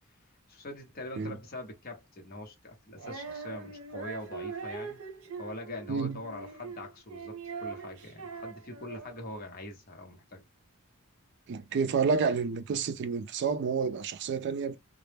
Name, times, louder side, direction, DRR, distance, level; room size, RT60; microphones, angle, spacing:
voice 1, 0.5-5.0 5.4-7.4 7.6-10.4, left 1 dB, 40° left, 0.8 m, -43 dB
Female singing, 3.0-9.4, right 5 dB, 80° right, 0.7 m, -42 dB
voice 2, 11.5-14.8, right 5 dB, 50° right, 0.3 m, -29 dB
2.1 x 2.0 x 3.2 m
head